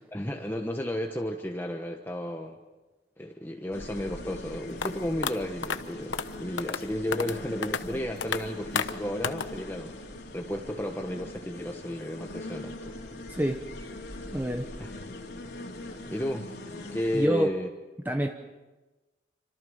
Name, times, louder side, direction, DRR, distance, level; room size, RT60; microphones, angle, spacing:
voice 1, 0.1-2.6 3.2-10.1 10.3-12.9 14.8-15.1 16.1-16.5 16.9-17.7, equal, 10° left, 3 dB, 1.1 m, -33 dB
sound 1, 3.7-17.3, left 2 dB, 60° left, 3.3 m, -41 dB
sound 2, 4.8-4.9 5.2-5.3 5.6-5.8 6.1-6.3 6.6-6.8 7.1-7.4 7.6-7.8 8.2-8.4 8.8-8.9 9.2-9.5, left 6 dB, 80° left, 1.0 m, -29 dB
voice 2, 13.3-13.6 14.3-14.7 17.1-17.5 18.0-18.3, equal, 10° right, 4 dB, 0.9 m, -26 dB
28.0 x 26.0 x 5.6 m, 1.2 s
head